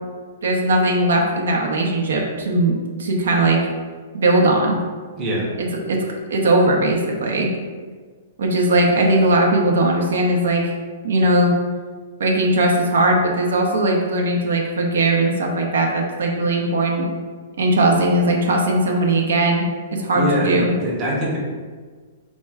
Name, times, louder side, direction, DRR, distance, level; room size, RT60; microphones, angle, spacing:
voice 1, 0.4-3.6 4.1-4.8 5.6-6.0 6.3-7.5 8.4-10.6 11.0-11.5 12.2-17.1 17.6-19.7 19.9-20.7, right 1 dB, 85° right, 0 dB, 0.8 m, -19 dB
voice 2, 5.2-5.5 20.1-21.4, equal, 15° right, -5 dB, 0.7 m, -23 dB
4.5 x 2.1 x 4.6 m, 1.5 s
hypercardioid pair, 175°, 0 cm